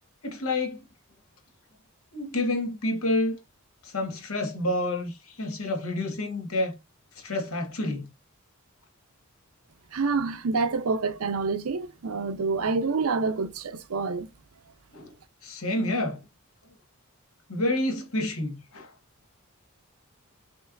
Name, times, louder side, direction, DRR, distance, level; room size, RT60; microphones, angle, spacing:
voice 1, 0.2-0.8 2.1-3.4 3.8-6.8 7.1-8.1 14.9-15.1 15.4-16.2 17.5-18.9, left 1 dB, 80° left, 1.5 m, -29 dB
voice 2, 9.9-14.3, right 4 dB, 80° right, 0.6 m, -27 dB
5.2 x 3.1 x 2.5 m
head